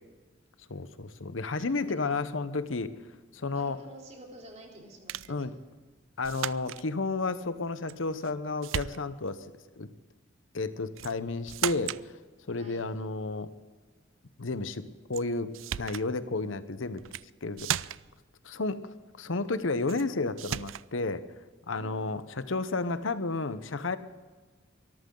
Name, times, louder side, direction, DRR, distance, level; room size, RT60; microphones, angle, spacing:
voice 1, 0.7-2.9 3.3-3.8 5.3-5.5 6.2-9.5 9.8-9.9 10.5-12.2 12.5-13.5 14.4-17.0 17.4-17.9 18.4-18.8 19.2-21.2 21.7-24.0, left 3 dB, 80° left, 12 dB, 0.9 m, -32 dB
voice 2, 1.6-2.1 3.5-5.5 12.6-12.9 21.7-22.0, right 1 dB, 35° right, 0 dB, 3.9 m, -49 dB
sound 1, 5.1-5.4 6.2-6.8 7.9-8.3 8.6-9.3 11.0-11.2 11.5-12.1 15.1-15.2 15.5-16.1 17.0-17.3 17.6-18.2 19.9-20.1 20.4-20.9, right 11 dB, 85° right, 0.4 m, -35 dB
23.5 x 14.0 x 3.9 m, 1.3 s
head